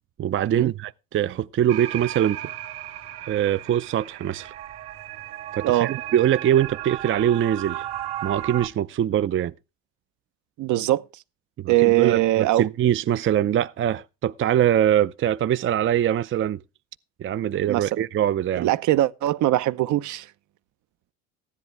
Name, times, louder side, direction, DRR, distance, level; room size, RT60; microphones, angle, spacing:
voice 1, 0.2-2.5 3.2-4.5 5.5-7.9 8.2-9.5 11.6-16.6 17.2-18.7, right 10 dB, 35° right, 0.6 m, -23 dB
sound 1, 1.7-8.7, right 13 dB, 80° right, 2.6 m, -35 dB
voice 2, 10.6-11.1 11.7-12.7 17.7-18.1 18.5-20.3, right 15 dB, 60° right, 0.9 m, -21 dB
15.5 x 11.0 x 3.4 m
supercardioid pair, 75°, 33 cm